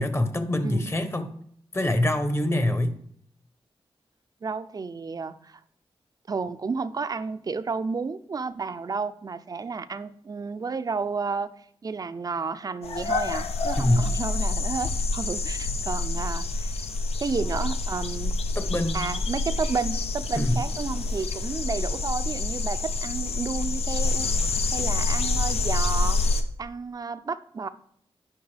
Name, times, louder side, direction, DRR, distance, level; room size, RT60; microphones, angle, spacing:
voice 1, 0.0-1.3 1.7-3.0 13.8-14.1 18.6-19.0 20.3-20.6, left 1 dB, 25° left, 0.8 m, -25 dB
voice 2, 0.6-0.9 4.4-5.6 6.3-11.5 11.8-16.8 17.2-18.4 18.9-24.3 24.7-26.2 26.6-27.7, right 4 dB, 40° right, 0.4 m, -31 dB
sound 1, 12.8-26.4, left 3 dB, 85° left, 0.6 m, -27 dB
10.5 x 5.3 x 3.4 m
wide cardioid pair, 90°, 10 cm